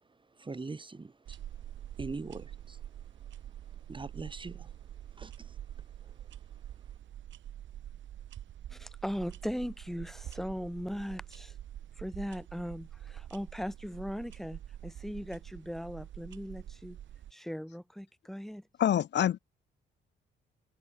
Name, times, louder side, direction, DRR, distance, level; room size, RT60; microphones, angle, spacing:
voice 1, 0.3-1.4 2.0-2.8 3.7-4.8 5.2-5.6 6.0-6.3, right 3 dB, 25° right, 8.0 m, -42 dB
sound 1, 1.3-17.3, right 11 dB, 70° right, 5.8 m, -46 dB
voice 2, 8.7-11.6 12.0-17.0 17.3-18.7, equal, ahead, 6.5 m, -39 dB
voice 3, 18.8-19.4, left 10 dB, 60° left, 1.3 m, -26 dB
cardioid pair, 90°, 20 cm